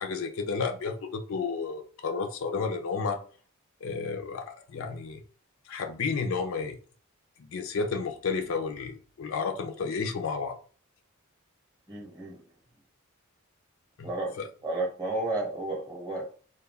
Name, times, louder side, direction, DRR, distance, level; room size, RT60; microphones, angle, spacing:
voice 1, 0.0-3.2 3.8-5.2 5.7-6.8 7.4-10.6 14.0-14.1 14.3-14.5, left 5 dB, 65° left, 0.4 m, -32 dB
voice 2, 11.9-12.4 14.0-16.3, right 2 dB, 20° right, 0.8 m, -33 dB
2.2 x 2.2 x 3.4 m
head